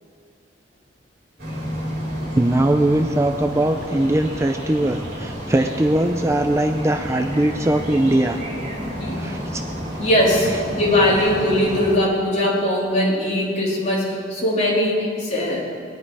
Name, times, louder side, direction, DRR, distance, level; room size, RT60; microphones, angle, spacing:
sound 1, 1.4-12.0, equal, 55° right, 4.3 m, -31 dB
voice 1, 2.3-8.4 9.1-9.6, right 1 dB, 15° right, 5 dB, 0.5 m, -20 dB
voice 2, 10.0-15.6, left 1 dB, 40° left, -5 dB, 3.7 m, -20 dB
20.5 x 10.5 x 4.9 m, 2.2 s
head